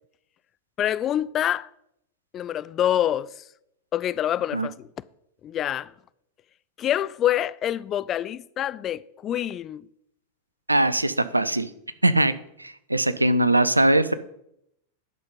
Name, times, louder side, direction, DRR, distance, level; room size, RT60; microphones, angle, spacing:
voice 1, 0.8-1.7 2.3-3.3 3.9-4.9 5.4-5.9 6.8-9.9, left 11 dB, 30° left, 0.3 m, -26 dB
voice 2, 10.7-11.7 12.0-14.1, right 1 dB, 85° right, 0.5 m, -21 dB
11.0 x 5.5 x 5.4 m
figure-of-eight pair, 90°, 0 cm